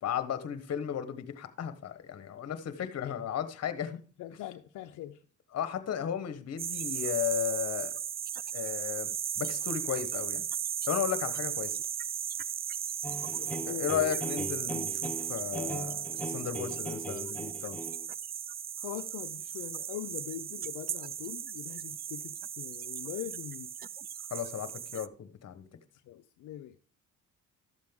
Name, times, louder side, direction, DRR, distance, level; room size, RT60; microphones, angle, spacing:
voice 1, 0.0-4.0 5.5-7.9 8.5-9.1 9.4-10.5 10.9-11.8 13.7-17.8 24.3-25.6, left 9 dB, 55° left, 1.2 m, -34 dB
voice 2, 2.5-2.9 4.2-5.2 13.4-13.9 18.8-23.7 26.0-26.8, left 12 dB, 80° left, 0.6 m, -42 dB
sound 1, 6.6-25.1, right 8 dB, 30° right, 0.4 m, -36 dB
sound 2, 13.0-18.1, right 1 dB, 5° left, 1.2 m, -39 dB
12.5 x 7.5 x 3.6 m
cardioid pair, 90°, 30 cm